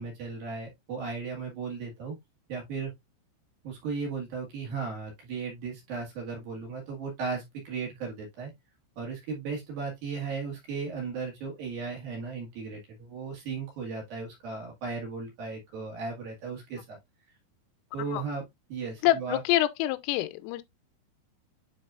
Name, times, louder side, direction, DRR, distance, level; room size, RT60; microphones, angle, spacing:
voice 1, 0.0-2.2 2.5-2.9 3.6-8.5 9.0-17.0 17.9-18.4 18.7-19.4, right 5 dB, 60° right, 2.8 m, -36 dB
voice 2, 19.0-20.6, left 15 dB, 85° left, 3.2 m, -26 dB
9.9 x 4.0 x 2.4 m
omnidirectional pair, 5.7 m